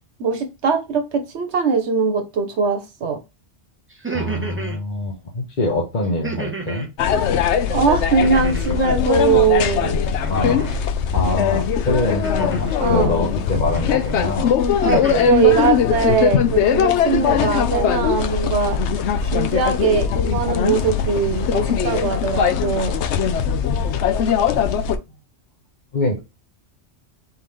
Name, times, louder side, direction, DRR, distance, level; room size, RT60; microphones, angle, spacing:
voice 1, 0.2-3.2 7.7-10.0 12.8-13.1 14.8-18.8 19.3-22.9, right 5 dB, 80° right, 6 dB, 1.2 m, -20 dB
sound 1, 3.9-4.8 6.2-6.9 8.2-8.9 10.2-10.8 12.2-12.9 13.7-14.1 14.6-15.4, right 3 dB, 10° right, 0.9 m, -31 dB
voice 2, 4.1-6.9 10.3-10.8 11.1-14.5 17.3-17.5 22.3-22.5 23.7-23.9 25.9-26.2, left 2 dB, 45° left, -1 dB, 1.2 m, -24 dB
sound 2, 7.0-25.0, left 8 dB, 85° left, 0.9 m, -20 dB
4.6 x 3.6 x 3.1 m, 0.25 s
omnidirectional pair, 1.1 m